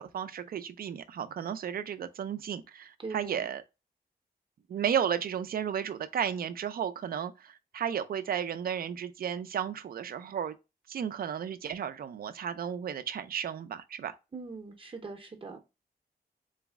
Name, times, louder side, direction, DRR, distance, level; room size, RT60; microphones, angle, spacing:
voice 1, 0.0-3.6 4.7-10.6 10.9-14.1, right 8 dB, 65° right, 0.4 m, -33 dB
voice 2, 3.0-3.5 14.3-15.6, right 4 dB, 30° right, 0.7 m, -41 dB
4.0 x 2.0 x 3.4 m
wide cardioid pair, 105°, 17 cm